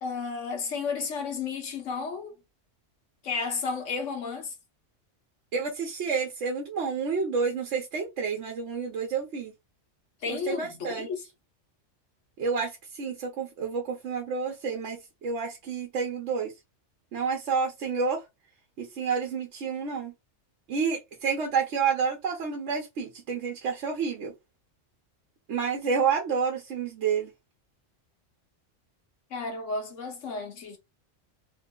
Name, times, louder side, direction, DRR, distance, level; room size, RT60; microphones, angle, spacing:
voice 1, 0.0-2.3 3.2-4.5 10.2-11.2 29.3-30.8, left 5 dB, 75° left, 1.3 m, -32 dB
voice 2, 5.5-9.5 10.3-11.1 12.4-16.5 17.1-18.2 18.8-20.1 20.7-24.3 25.5-27.3, right 5 dB, 70° right, 1.1 m, -29 dB
3.2 x 2.0 x 3.7 m
omnidirectional pair, 1.3 m